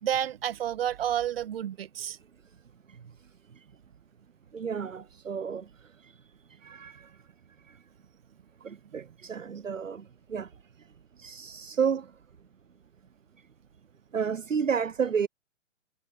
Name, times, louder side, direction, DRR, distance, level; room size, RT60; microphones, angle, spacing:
voice 1, 0.0-2.2, right 10 dB, 50° right, 1.9 m, -30 dB
voice 2, 4.5-5.6 6.6-6.9 8.6-10.0 10.3-10.5 11.2-12.0 14.1-15.3, right 6 dB, 80° right, 0.9 m, -30 dB
figure-of-eight pair, 130°, 38 cm